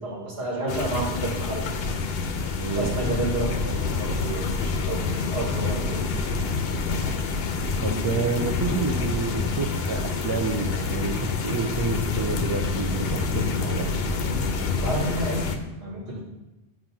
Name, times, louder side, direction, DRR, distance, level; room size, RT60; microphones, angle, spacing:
voice 1, 0.0-1.9 2.7-6.0 14.8-15.5 15.8-16.2, right 1 dB, 85° right, -3 dB, 1.3 m, -30 dB
sound 1, 0.7-15.6, left 4 dB, 75° left, 0.8 m, -27 dB
voice 2, 2.6-2.9 6.9-7.0 7.8-13.9, right 5 dB, 35° right, 6 dB, 0.3 m, -29 dB
7.4 x 2.6 x 5.8 m, 1.0 s
omnidirectional pair, 1.0 m